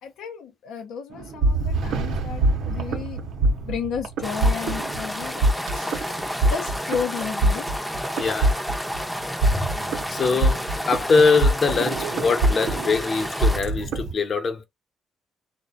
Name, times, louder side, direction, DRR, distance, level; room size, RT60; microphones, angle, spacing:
voice 1, 0.0-3.2 3.6-6.2 6.5-7.7, left 7 dB, 90° left, 0.5 m, -33 dB
sound 1, 1.1-14.1, right 2 dB, 80° right, 0.6 m, -24 dB
sound 2, 4.2-13.6, equal, ahead, 0.4 m, -31 dB
voice 2, 8.2-8.6 10.1-14.6, left 4 dB, 50° left, 0.7 m, -22 dB
2.4 x 2.1 x 2.4 m
cardioid pair, 90°, 0 cm